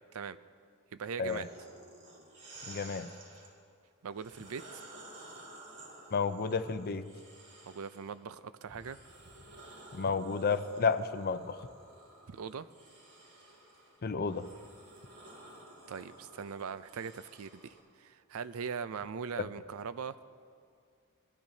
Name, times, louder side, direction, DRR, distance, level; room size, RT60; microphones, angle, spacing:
voice 1, 0.9-1.5 4.0-4.8 7.6-9.0 12.3-12.7 15.9-17.5 18.0-20.2, right 6 dB, 70° right, 13 dB, 0.5 m, -40 dB
sound 1, 1.2-3.5 4.1-8.2 8.7-17.8, right 2 dB, 85° right, 4.1 m, -53 dB
voice 2, 2.7-3.1 6.1-7.1 9.9-11.7 14.0-14.5 19.4-19.5, left 5 dB, 45° left, 11 dB, 0.5 m, -31 dB
21.5 x 13.5 x 2.8 m, 2.2 s
head